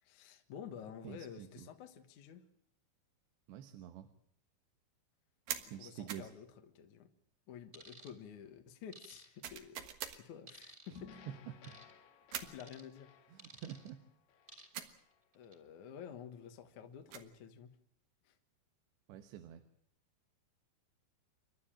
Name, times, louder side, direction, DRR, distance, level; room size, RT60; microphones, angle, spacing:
voice 1, 0.0-2.4 5.7-7.1 7.5-9.8 10.1-11.2 12.4-13.1 15.3-17.8 18.2-18.4, left 8 dB, 60° left, 6 dB, 2.3 m, -51 dB
voice 2, 1.0-1.7 3.5-4.1 5.7-6.3 11.7-11.8 13.3-14.0 19.1-19.6, right 10 dB, 75° right, 7 dB, 3.3 m, -48 dB
sound 1, 5.5-5.7 6.1-6.3 9.4-10.2 12.3-12.6 14.7-15.0 16.9-17.3, right 9 dB, 60° right, 2.7 m, -43 dB
sound 2, 7.7-8.1 8.9-9.6 10.5-11.0 11.6-11.9 12.6-12.8 13.4-13.9 14.5-14.9 15.3-15.5, right 2 dB, 15° right, 2.9 m, -55 dB
sound 3, 11.0-15.3, left 7 dB, 90° left, 4.5 m, -59 dB
29.0 x 12.5 x 8.9 m, 0.71 s
omnidirectional pair, 5.3 m